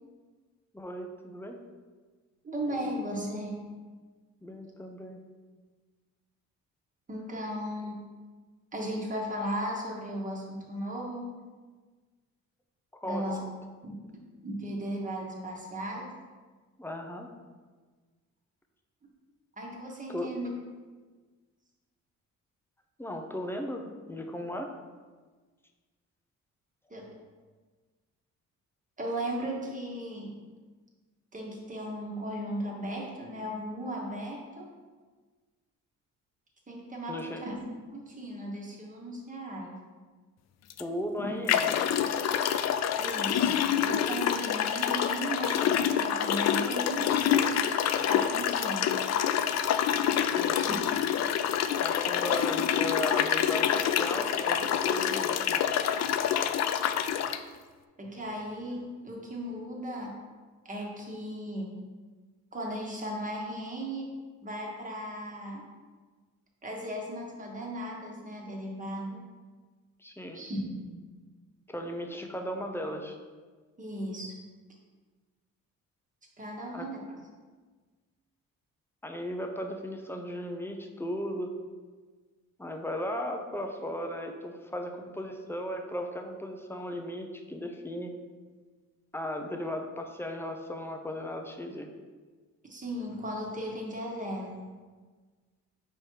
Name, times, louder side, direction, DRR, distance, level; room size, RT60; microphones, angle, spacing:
voice 1, 0.7-1.6 4.4-5.2 12.9-13.5 16.8-17.3 20.1-20.3 23.0-24.7 37.1-37.4 40.8-41.9 50.2-50.5 51.8-55.7 70.0-70.4 71.7-73.2 76.7-76.9 79.0-81.5 82.6-88.1 89.1-91.9, left 1 dB, 10° left, 4 dB, 0.7 m, -36 dB
voice 2, 2.4-3.6 7.1-8.0 8.7-11.3 13.0-13.4 13.8-13.9 14.4-16.1 19.6-20.5 26.9-27.1 29.0-30.3 31.3-34.7 36.7-37.5 37.9-39.7 41.2-41.3 43.0-47.5 48.1-48.8 50.5-50.8 58.0-60.2 60.6-61.7 62.5-64.1 64.4-65.6 66.6-69.2 70.3-70.9 73.8-74.4 76.4-77.0 92.7-94.5, equal, 25° right, -2 dB, 1.4 m, -36 dB
sound 1, 40.7-40.8 41.5-57.4, left 9 dB, 60° left, 0.4 m, -27 dB
4.9 x 4.4 x 4.6 m, 1.4 s
cardioid pair, 90°, 30 cm